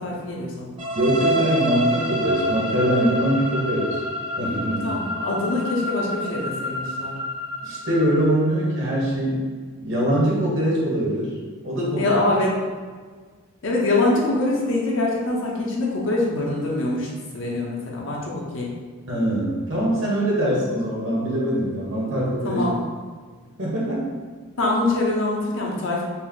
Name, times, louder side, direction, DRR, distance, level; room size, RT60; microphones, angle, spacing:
voice 1, 0.0-0.8 4.7-7.2 12.0-12.5 13.6-18.7 22.4-22.8 24.6-26.0, left 2 dB, 60° left, -3 dB, 0.7 m, -24 dB
sound 1, 0.8-8.6, equal, 25° right, 0.8 m, -28 dB
voice 2, 0.9-4.0 4.4-4.9 7.6-9.4 9.8-11.3 11.6-12.1 19.1-22.7 23.6-24.1, right 1 dB, 60° right, -5 dB, 1.2 m, -23 dB
4.3 x 2.0 x 3.6 m, 1.5 s
head